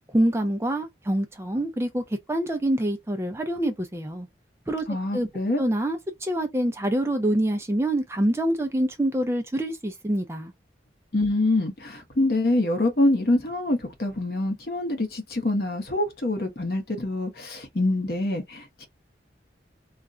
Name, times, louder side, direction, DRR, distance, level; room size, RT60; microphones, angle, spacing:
voice 1, 0.1-2.0 2.3-4.3 4.7-4.9 5.1-5.3 5.6-10.5, right 1 dB, 15° right, 0.4 m, -26 dB
voice 2, 4.9-5.6 11.1-18.9, left 2 dB, 55° left, 0.8 m, -25 dB
2.4 x 2.2 x 3.7 m
head